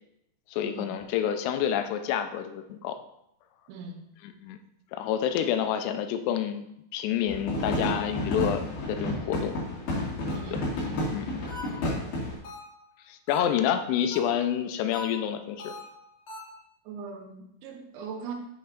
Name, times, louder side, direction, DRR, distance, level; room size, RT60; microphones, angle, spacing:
voice 1, 0.5-3.0 4.2-4.6 4.9-6.6 6.9-9.6 10.5-10.6 11.1-11.3 13.1-15.7, left 9 dB, 80° left, 7 dB, 2.6 m, -28 dB
sound 1, 7.3-12.4, left 1 dB, 65° left, 3.9 m, -31 dB
sound 2, 10.3-10.7 11.5-12.0 12.4-12.9 13.3-13.7 14.1-14.5 14.9-16.6, left 3 dB, 50° left, 2.1 m, -43 dB
voice 2, 16.9-18.3, right 5 dB, 80° right, 2 dB, 2.9 m, -40 dB
7.9 x 3.2 x 5.1 m, 0.79 s
omnidirectional pair, 4.9 m